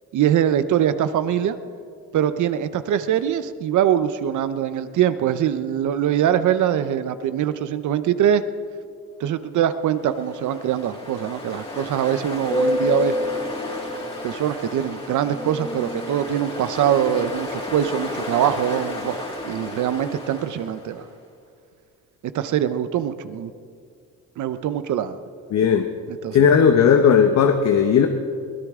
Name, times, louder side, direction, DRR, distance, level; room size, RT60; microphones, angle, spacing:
voice 1, 0.1-1.6 2.1-8.4 9.2-13.1 14.2-21.1 22.3-23.5 24.4-25.2 26.1-26.5, right 10 dB, 65° right, 12 dB, 0.8 m, -23 dB
Ocean, 9.9-21.0, left 2 dB, 20° left, 2.9 m, -30 dB
voice 2, 25.5-25.9 26.3-28.1, left 7 dB, 55° left, 5 dB, 1.0 m, -16 dB
22.5 x 17.0 x 3.7 m, 2.3 s
cardioid pair, 125°, 33 cm